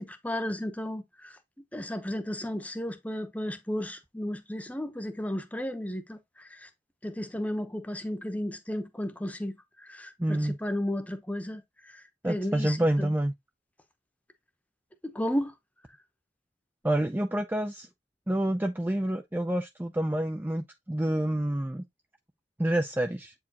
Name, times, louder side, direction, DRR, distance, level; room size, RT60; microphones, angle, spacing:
voice 1, 0.0-1.4 1.7-6.7 7.0-9.5 9.8-13.1 15.0-15.5, left 1 dB, 10° left, 0.8 m, -34 dB
voice 2, 10.2-10.6 12.2-13.3 16.8-17.9 18.3-21.8 22.6-23.3, right 1 dB, 10° right, 0.5 m, -28 dB
8.4 x 4.6 x 2.9 m
head